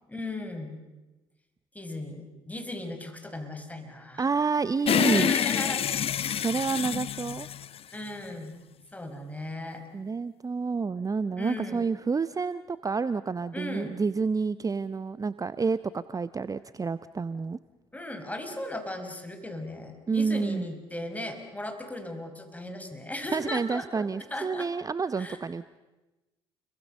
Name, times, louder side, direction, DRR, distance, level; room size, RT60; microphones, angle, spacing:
voice 1, 0.1-0.8 1.7-4.3 4.9-5.8 7.9-8.6 8.9-9.8 11.4-11.8 13.5-13.9 17.9-24.7 25.2-25.4, left 1 dB, 10° left, 6 dB, 5.6 m, -37 dB
voice 2, 4.2-5.3 6.3-7.5 9.9-17.6 20.1-20.7 23.3-25.8, right 4 dB, 30° right, 15 dB, 0.8 m, -29 dB
sound 1, 4.9-8.3, left 9 dB, 50° left, 0.8 m, -27 dB
29.5 x 23.0 x 6.6 m, 1.1 s
hypercardioid pair, 50°, 13 cm